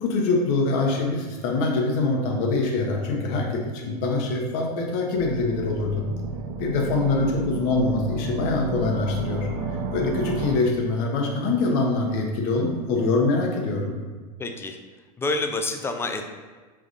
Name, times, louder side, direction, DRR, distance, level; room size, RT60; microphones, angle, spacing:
voice 1, 0.0-6.0 6.6-9.5 9.9-14.0, left 3 dB, 55° left, 1 dB, 0.9 m, -24 dB
sound 1, 5.1-10.6, right 4 dB, 50° right, 0.5 m, -32 dB
voice 2, 14.4-14.8 15.2-16.2, left 2 dB, 10° left, 5 dB, 0.4 m, -27 dB
4.9 x 3.5 x 2.5 m, 1.4 s
hypercardioid pair, 90°, 20 cm